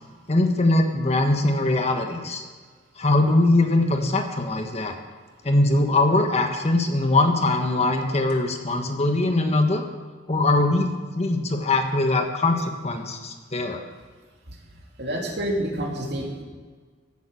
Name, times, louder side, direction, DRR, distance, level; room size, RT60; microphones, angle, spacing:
voice 1, 0.3-2.4 3.0-5.0 5.4-9.8 10.3-10.9 11.1-13.8, left 2 dB, 35° left, 4 dB, 1.4 m, -21 dB
voice 2, 15.0-16.4, right 1 dB, 60° right, 0 dB, 2.8 m, -28 dB
16.0 x 9.3 x 6.3 m, 1.5 s
head